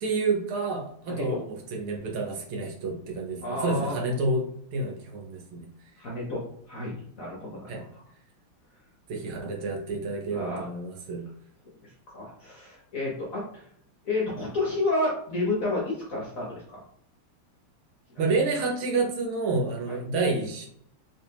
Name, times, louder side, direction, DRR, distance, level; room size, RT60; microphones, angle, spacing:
voice 1, 0.0-5.7 7.7-7.9 9.1-11.2 18.2-20.7, right 3 dB, 75° right, 1 dB, 1.7 m, -29 dB
voice 2, 1.1-1.4 3.4-4.0 6.0-8.0 9.4-9.5 10.3-10.7 12.1-13.7 14.0-16.8 18.1-18.2 19.9-20.0, left 2 dB, 55° left, -4 dB, 1.0 m, -31 dB
3.4 x 3.2 x 2.8 m, 0.68 s
omnidirectional pair, 2.4 m